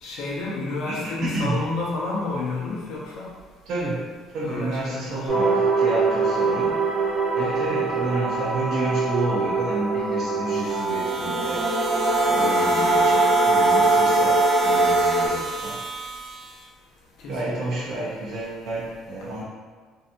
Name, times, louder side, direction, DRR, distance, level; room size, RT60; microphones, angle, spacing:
voice 1, 0.0-3.3 4.4-5.3 7.6-7.8 17.2-17.9, left 3 dB, 60° left, -5 dB, 0.7 m, -30 dB
voice 2, 0.9-1.6 3.7-6.8 7.3-11.7 12.2-15.8 17.3-19.4, right 2 dB, 50° right, -6 dB, 0.5 m, -30 dB
sound 1, 5.3-15.3, right 3 dB, 10° right, 0.8 m, -22 dB
sound 2, 10.5-16.7, right 2 dB, 85° right, 0.7 m, -32 dB
2.6 x 2.2 x 2.5 m, 1.5 s
cardioid pair, 165°, 0 cm